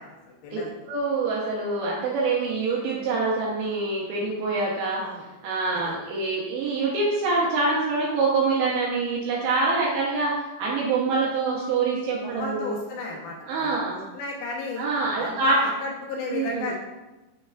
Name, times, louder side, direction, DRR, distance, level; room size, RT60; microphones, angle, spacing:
voice 1, 0.0-0.7 5.0-5.2 5.7-5.9 12.2-14.9 15.2-16.7, left 3 dB, 85° left, -1 dB, 2.7 m, -34 dB
voice 2, 0.9-5.0 5.4-12.7 13.5-14.0 14.8-15.6 16.3-16.7, right 3 dB, 80° right, -5 dB, 2.3 m, -25 dB
6.2 x 3.2 x 2.2 m, 1.1 s
omnidirectional pair, 4.2 m